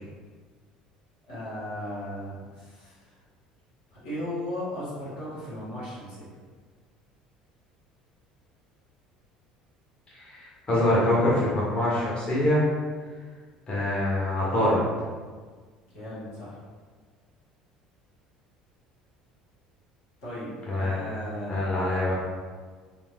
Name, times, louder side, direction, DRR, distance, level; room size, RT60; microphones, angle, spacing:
voice 1, 1.3-3.1 3.9-6.3 15.9-16.6 20.2-21.7, left 1 dB, 65° left, -9 dB, 1.2 m, -36 dB
voice 2, 10.1-12.6 13.7-14.8 20.7-20.9 21.5-22.1, left 1 dB, 30° left, -7 dB, 0.9 m, -24 dB
3.5 x 2.6 x 2.3 m, 1.5 s
figure-of-eight pair, 60°, 4 cm